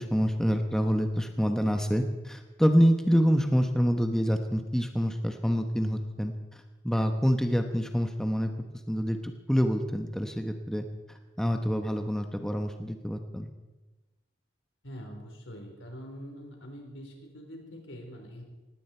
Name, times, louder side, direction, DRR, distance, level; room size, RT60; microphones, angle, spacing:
voice 1, 0.0-8.5 8.9-13.5, equal, 5° left, 5 dB, 1.0 m, -27 dB
voice 2, 14.8-18.4, equal, 85° left, 2 dB, 4.1 m, -44 dB
19.0 x 16.5 x 4.5 m, 1.1 s
head